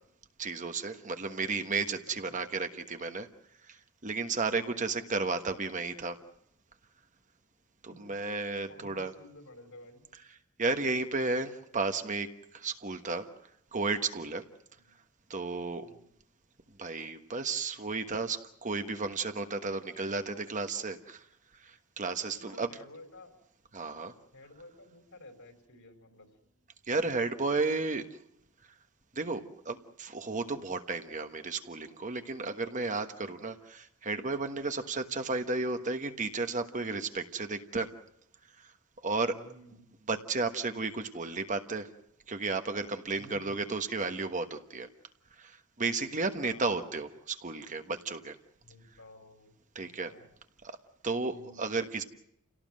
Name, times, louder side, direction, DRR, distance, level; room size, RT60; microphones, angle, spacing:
voice 1, 0.4-3.3 4.0-6.2 7.8-9.1 10.6-12.3 12.5-13.3 13.7-14.4 15.3-15.9 16.8-21.2 21.6-22.7 23.7-24.1 26.9-28.1 29.1-37.9 39.0-39.4 40.1-41.9 42.3-44.9 45.4-48.3 49.7-50.1 50.6-50.8 51.0-52.0, right 3 dB, 35° right, 7 dB, 1.3 m, -33 dB
voice 2, 1.8-2.4 4.8-5.0 7.9-8.2 8.7-10.0 14.8-14.9 15.8-16.1 22.4-23.3 24.3-26.3 35.0-35.4 39.3-39.9 43.1-43.6 46.4-46.9 48.6-49.5 49.8-50.2 51.3-51.6, left 1 dB, 65° left, 6 dB, 4.6 m, -53 dB
29.0 x 18.0 x 7.6 m, 0.78 s
head